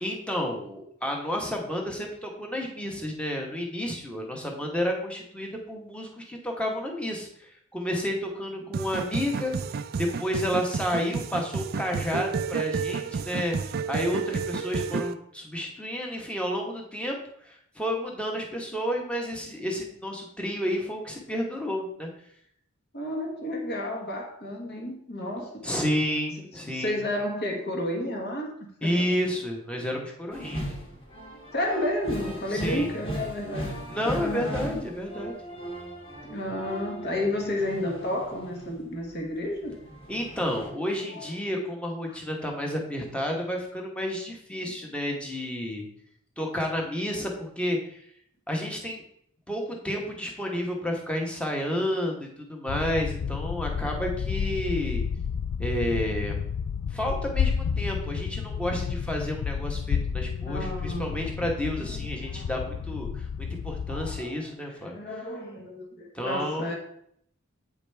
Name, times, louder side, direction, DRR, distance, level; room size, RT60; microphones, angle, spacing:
voice 1, 0.0-9.5 10.0-17.2 17.4-22.1 25.6-27.0 28.8-30.7 32.5-33.0 33.9-35.3 40.1-45.9 46.4-48.0 48.5-49.0 49.5-55.0 55.6-56.4 56.9-64.9 66.1-66.7, equal, 5° left, 0 dB, 1.1 m, -31 dB
sound 1, 8.7-15.1, right 5 dB, 45° right, 0.3 m, -31 dB
voice 2, 22.9-25.6 26.7-29.1 31.5-33.7 34.0-34.8 36.2-39.8 41.1-41.3 42.1-42.2 60.4-61.2 61.8-62.5 63.9-64.4 64.9-66.8, left 1 dB, 50° left, 1 dB, 1.4 m, -31 dB
sound 2, 30.3-39.1 39.4-40.7, right 1 dB, 25° left, 1.7 m, -38 dB
sound 3, 52.7-64.2, left 6 dB, 80° left, 0.4 m, -31 dB
8.5 x 4.9 x 3.4 m, 0.69 s
head